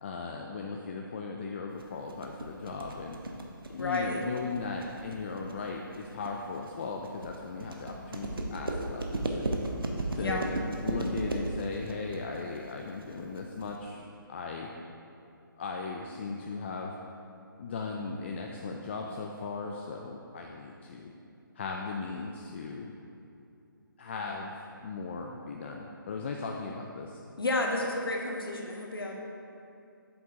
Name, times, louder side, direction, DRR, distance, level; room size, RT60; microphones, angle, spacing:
voice 1, 0.0-3.2 3.7-9.6 10.1-10.5 10.8-14.7 15.6-16.9 17.6-21.1 21.6-22.9 24.0-27.2, left 4 dB, 30° left, 1 dB, 0.4 m, -37 dB
sound 1, 1.8-13.8, right 1 dB, 85° right, 0.9 m, -35 dB
voice 2, 3.8-4.2 10.2-10.4 27.4-29.1, left 2 dB, 85° left, 0 dB, 1.3 m, -31 dB
8.0 x 7.5 x 2.8 m, 2.7 s
hypercardioid pair, 155°, 12 cm